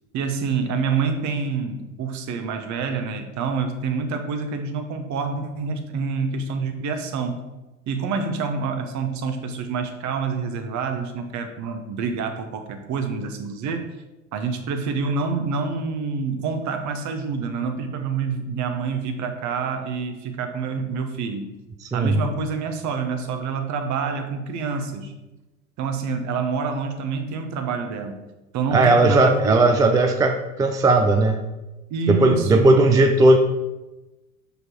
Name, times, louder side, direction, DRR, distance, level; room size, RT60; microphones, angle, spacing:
voice 1, 0.1-7.4 7.9-13.8 14.3-21.6 21.9-25.1 25.8-28.3 28.5-29.6 31.9-33.1, right 5 dB, 40° right, 7 dB, 1.1 m, -27 dB
voice 2, 28.7-31.4 32.1-33.4, right 2 dB, 10° right, 5 dB, 0.4 m, -17 dB
6.2 x 5.4 x 4.5 m, 1.0 s
figure-of-eight pair, 75°, 43 cm